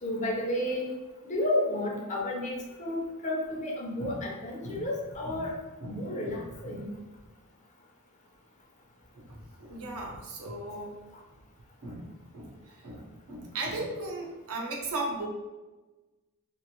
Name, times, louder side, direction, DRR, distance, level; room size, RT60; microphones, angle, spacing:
voice 1, 0.0-0.9 1.2-2.5 2.8-5.5 5.9-6.9, left 1 dB, 35° left, -1 dB, 0.6 m, -31 dB
voice 2, 5.8-6.9 9.1-11.0 11.8-15.3, right 2 dB, 65° right, 0 dB, 0.6 m, -38 dB
2.9 x 2.4 x 2.8 m, 1.2 s
head